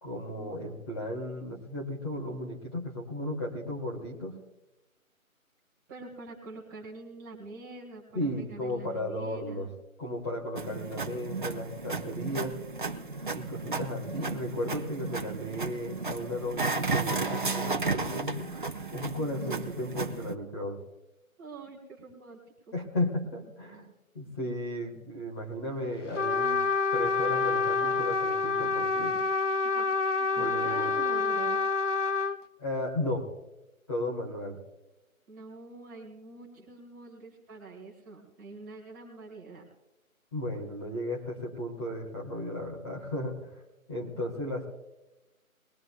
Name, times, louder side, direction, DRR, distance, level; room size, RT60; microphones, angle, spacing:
voice 1, 0.0-4.4 8.1-9.7 10.0-12.6 13.3-20.8 22.7-23.9 24.1-26.6 26.9-29.1 30.3-30.9 32.6-33.3 33.9-34.6 40.3-43.6 43.9-44.6, left 1 dB, 20° left, -3 dB, 1.6 m, -35 dB
voice 2, 5.9-9.7 21.4-22.4 22.7-22.8 29.0-29.3 29.8-31.7 35.3-39.7, right 3 dB, 10° right, -3 dB, 1.8 m, -46 dB
sound 1, 10.6-20.3, right 4 dB, 35° right, 0.7 m, -33 dB
Trumpet, 26.2-32.4, left 4 dB, 55° left, 0.7 m, -27 dB
21.5 x 18.5 x 2.3 m, 0.98 s
figure-of-eight pair, 160°, 43 cm